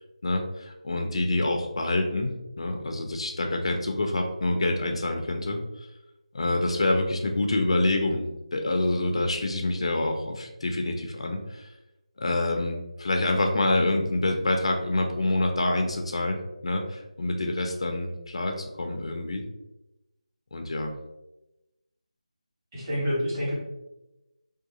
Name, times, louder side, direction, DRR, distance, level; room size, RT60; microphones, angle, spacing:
voice 1, 0.2-5.6 6.3-8.3 8.5-11.7 12.2-19.5 20.5-20.9, left 2 dB, 50° left, 3 dB, 0.4 m, -27 dB
voice 2, 22.7-23.6, equal, 30° right, -9 dB, 1.4 m, -27 dB
2.7 x 2.3 x 2.8 m, 0.96 s
figure-of-eight pair, 165°, 4 cm